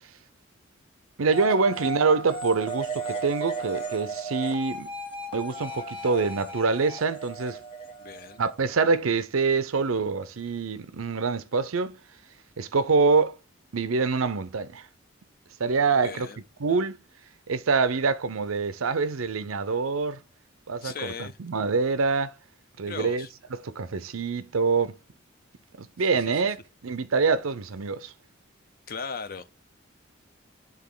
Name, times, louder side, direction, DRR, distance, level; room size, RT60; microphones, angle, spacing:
voice 1, 1.2-4.9 5.3-7.6 8.4-12.0 12.6-13.4 13.7-14.9 15.6-16.3 16.6-17.0 17.5-20.2 20.7-22.3 22.8-25.0 25.8-26.6 26.8-28.1, right 4 dB, 90° right, 0.6 m, -25 dB
sound 1, 1.3-8.8, right 3 dB, 25° left, 1.3 m, -35 dB
voice 2, 8.0-8.4 16.0-16.4 20.8-21.4 22.9-23.3 26.0-26.1 28.9-29.5, left 5 dB, 45° left, 0.6 m, -37 dB
9.5 x 3.8 x 3.8 m
head